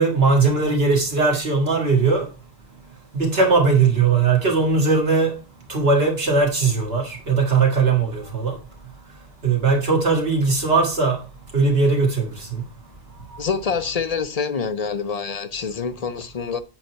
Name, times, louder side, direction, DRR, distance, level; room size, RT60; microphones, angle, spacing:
voice 1, 0.0-2.3 3.1-5.3 5.7-8.6 9.4-11.2 11.5-12.6, right 4 dB, 70° right, 2.1 m, -19 dB
voice 2, 13.4-16.6, left 5 dB, 40° left, 0.7 m, -26 dB
8.9 x 4.2 x 4.5 m
omnidirectional pair, 1.1 m